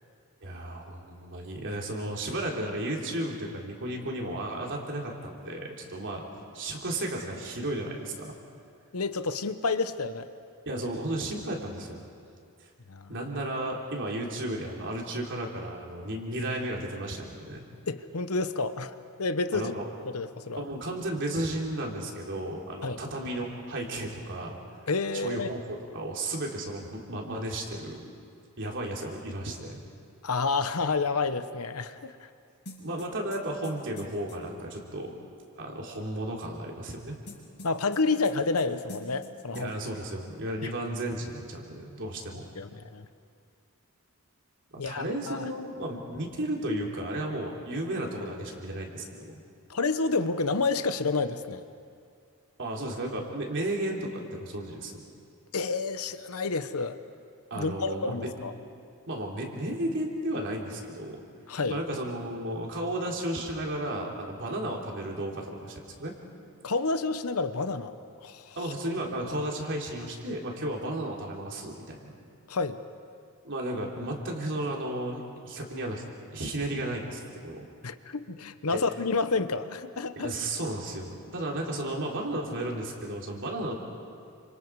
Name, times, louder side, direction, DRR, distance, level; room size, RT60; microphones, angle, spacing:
voice 1, 0.4-6.2 6.5-8.4 10.7-12.0 12.6-12.7 13.1-17.6 19.5-19.9 20.6-24.6 25.1-25.6 25.9-28.1 28.6-29.8 32.8-35.2 35.6-37.2 39.5-42.5 44.9-49.4 52.6-55.0 57.5-58.4 59.1-61.2 61.7-66.1 68.6-72.1 73.4-76.0 76.3-77.7 78.7-78.8 80.2-83.8, right 1 dB, 55° right, -1 dB, 3.5 m, -34 dB
voice 2, 8.9-10.3 12.9-13.1 17.9-18.9 19.2-19.8 20.1-20.6 22.8-23.0 24.9-25.5 30.2-32.3 37.6-39.7 40.6-40.7 42.6-43.1 44.8-45.4 49.7-51.6 55.5-57.0 57.6-58.5 61.5-61.8 66.6-67.9 68.2-68.6 72.5-72.8 77.8-80.3, left 3 dB, 75° left, 11 dB, 1.0 m, -29 dB
sound 1, 32.7-34.4 37.3-38.6 38.9-39.3 39.5-39.7, left 1 dB, 50° left, 5.6 m, -45 dB
29.5 x 26.5 x 4.8 m, 2.4 s
head